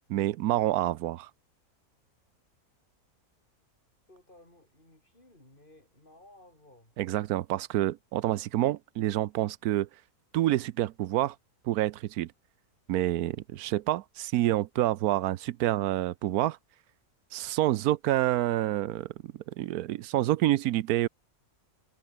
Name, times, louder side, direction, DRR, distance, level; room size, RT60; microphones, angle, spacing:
voice 1, 0.1-1.3 7.0-9.9 10.3-11.4 11.6-12.3 12.9-16.6 17.3-19.1 19.6-21.1, right 14 dB, 85° right, 1.1 m, -27 dB
voice 2, 4.1-7.0, left 1 dB, 35° left, 5.3 m, -57 dB
omnidirectional pair, 1.6 m